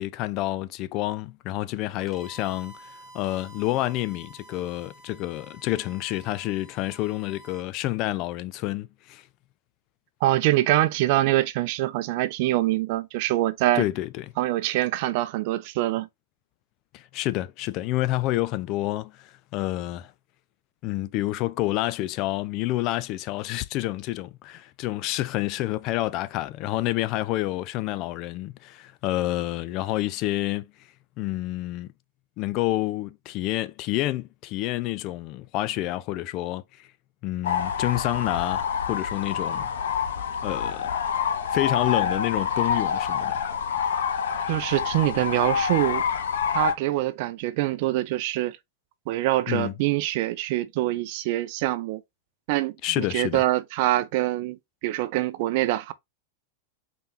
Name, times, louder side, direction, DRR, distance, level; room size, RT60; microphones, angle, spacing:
voice 1, 0.0-9.2 13.8-14.3 16.9-20.1 20.8-30.7 31.2-31.9 32.4-36.9 37.2-39.7 40.4-40.9 41.5-43.4 49.5-49.7 52.8-53.4, left 16 dB, 45° left, 0.4 m, -28 dB
Bowed string instrument, 2.0-7.7, right 1 dB, ahead, 1.6 m, -49 dB
voice 2, 10.2-13.8 14.4-16.1 44.5-46.0 46.5-48.6 49.1-52.0 52.5-54.6 54.8-55.9, right 16 dB, 55° right, 0.5 m, -24 dB
sound 1, 37.4-46.7, left 7 dB, 75° left, 0.8 m, -27 dB
4.2 x 3.5 x 2.7 m
hypercardioid pair, 105°, 0 cm